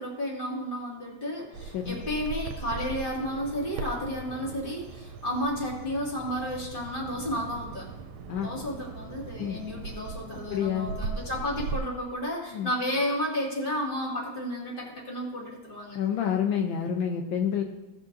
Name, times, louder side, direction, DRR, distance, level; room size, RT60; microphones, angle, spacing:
voice 1, 0.0-7.9 8.4-16.0, equal, 25° left, -3 dB, 2.3 m, -32 dB
Bird vocalization bird call bird song, 1.5-11.8, right 4 dB, 85° right, 1.5 m, -39 dB
voice 2, 10.5-10.9 12.5-12.7 15.9-17.6, left 8 dB, 75° left, 2 dB, 1.5 m, -28 dB
16.5 x 7.5 x 2.6 m, 1.1 s
omnidirectional pair, 2.2 m